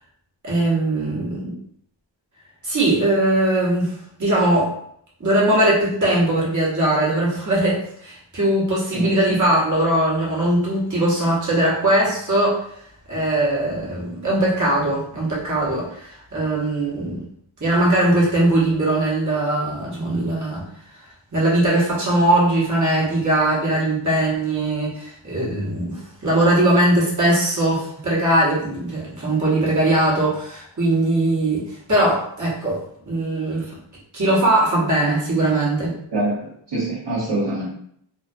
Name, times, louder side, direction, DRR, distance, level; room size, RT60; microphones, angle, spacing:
voice 1, 0.4-1.5 2.6-3.9 4.2-4.7 5.2-12.6 13.1-17.2 17.6-20.6 21.3-31.6 31.9-33.6 34.1-35.9, right 1 dB, 35° right, -6 dB, 1.2 m, -20 dB
voice 2, 8.9-9.4 36.1-37.7, right 2 dB, 60° right, -10 dB, 0.9 m, -25 dB
2.4 x 2.1 x 2.5 m, 0.67 s
wide cardioid pair, 70°, 49 cm